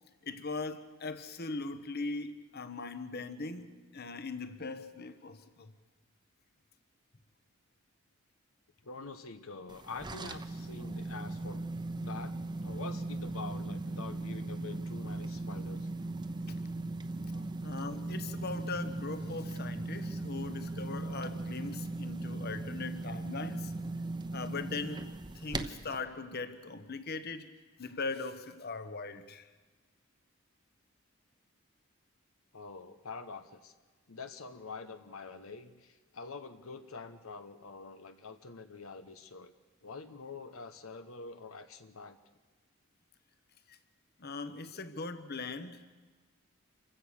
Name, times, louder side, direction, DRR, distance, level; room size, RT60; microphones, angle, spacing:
voice 1, 0.2-5.7 17.6-23.7 24.3-27.5 27.8-29.5 43.7-43.8 44.2-45.8, left 3 dB, 50° left, 10 dB, 1.3 m, -40 dB
voice 2, 8.8-11.7 12.0-15.9 17.3-17.5 32.5-33.7 34.1-39.5 39.8-42.2, left 4 dB, 85° left, 9 dB, 1.1 m, -46 dB
sound 1, 9.7-26.0, right 2 dB, 20° right, 1.0 m, -38 dB
27.5 x 16.0 x 6.5 m, 1.3 s
head